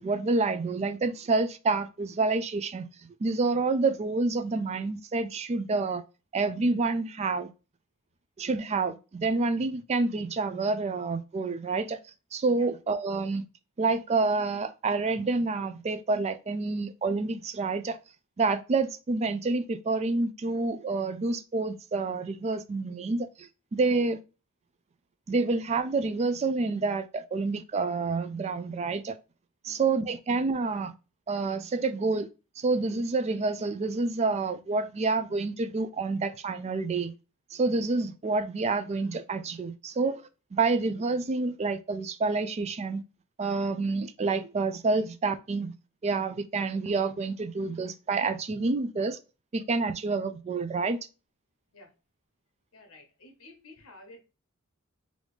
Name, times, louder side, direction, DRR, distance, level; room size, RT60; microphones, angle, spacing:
voice 1, 0.0-6.0 6.3-7.5 8.4-12.0 12.3-13.4 13.8-18.0 18.4-24.2 25.3-29.2 29.6-30.9 31.3-32.3 32.6-37.1 37.5-40.2 40.5-43.0 43.4-45.7 46.0-49.2 49.5-51.0, right 3 dB, 30° right, 0.3 m, -28 dB
voice 2, 29.7-30.1 51.7-52.0 52.7-54.2, left 2 dB, 70° left, 1.1 m, -52 dB
3.3 x 2.6 x 3.1 m
head